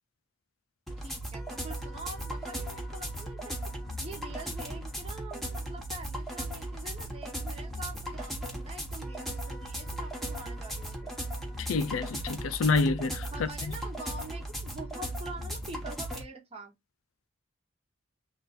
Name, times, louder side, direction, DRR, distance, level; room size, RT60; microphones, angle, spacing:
sound 1, 0.9-16.2, right 1 dB, ahead, 1.0 m, -37 dB
voice 1, 1.0-3.6 4.0-11.2 13.3-16.7, right 2 dB, 30° right, 1.1 m, -45 dB
voice 2, 11.6-13.7, left 4 dB, 80° left, 0.5 m, -28 dB
3.7 x 2.5 x 4.0 m
head